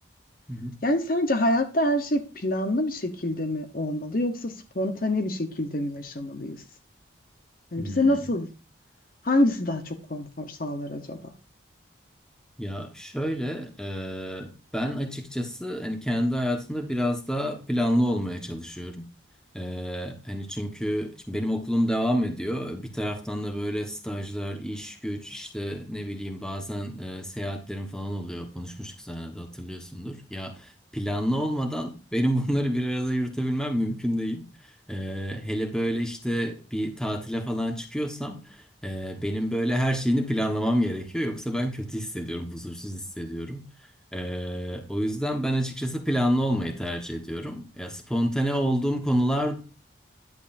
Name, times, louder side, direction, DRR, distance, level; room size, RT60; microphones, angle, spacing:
voice 1, 0.8-6.6 7.7-8.5 9.2-11.2, left 1 dB, 45° left, 8 dB, 1.0 m, -26 dB
voice 2, 7.8-8.3 12.6-19.0 19.5-34.5 34.9-43.7 44.1-49.6, equal, 5° left, 4 dB, 1.2 m, -29 dB
10.5 x 8.0 x 2.6 m, 0.32 s
head